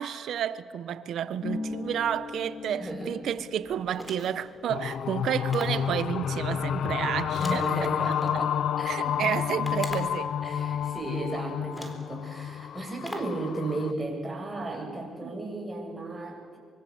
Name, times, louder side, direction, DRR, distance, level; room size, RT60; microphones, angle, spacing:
voice 1, 0.0-7.9 8.9-10.3 15.2-15.3, right 9 dB, 70° right, 1.2 m, -31 dB
Harp, 1.4-8.9 9.1-10.3 10.5-11.2, left 3 dB, 45° left, 6.9 m, -43 dB
voice 2, 2.7-3.1 7.4-9.4 10.4-16.6, right 2 dB, 15° right, 7.8 m, -35 dB
sound 1, 3.9-4.5 5.5-5.9 7.3-8.3 9.6-10.3 11.2-11.3 11.7-12.1 13.0-13.4, equal, 10° left, 4.0 m, -41 dB
sound 2, 4.7-13.9, left 9 dB, 70° left, 0.8 m, -30 dB
24.5 x 23.5 x 8.2 m
cardioid pair, 90°, 0 cm